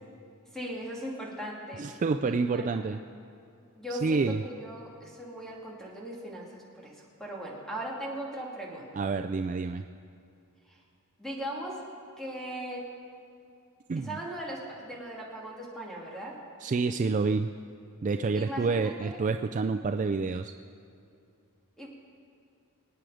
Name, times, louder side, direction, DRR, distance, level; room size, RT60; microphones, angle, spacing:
voice 1, 0.5-1.9 2.2-2.8 3.8-8.9 10.7-10.8 11.2-11.8 12.2-12.9 14.0-16.4 18.3-19.2 21.8-21.9, right 1 dB, ahead, -4 dB, 2.7 m, -39 dB
voice 2, 1.8-3.0 3.9-4.4 9.0-9.8 13.9-14.2 16.6-17.5 18.0-20.5, right 4 dB, 35° right, 6 dB, 0.3 m, -28 dB
24.5 x 9.2 x 5.0 m, 2.5 s
head